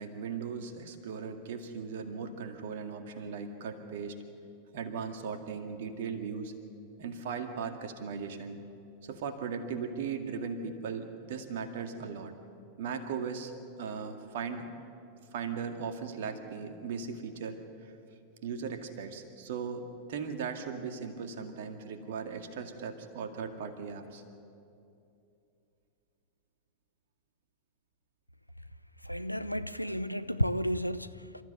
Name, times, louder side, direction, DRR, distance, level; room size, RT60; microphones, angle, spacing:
voice 1, 0.0-4.2 4.7-6.5 7.0-8.6 9.0-12.3 12.8-14.7 15.3-17.6 18.4-19.8 20.1-24.2, right 6 dB, 55° right, 2.1 m, -38 dB
voice 2, 29.1-31.2, equal, 90° left, 0.6 m, -32 dB
28.5 x 14.0 x 8.0 m
figure-of-eight pair, 90°, 0 cm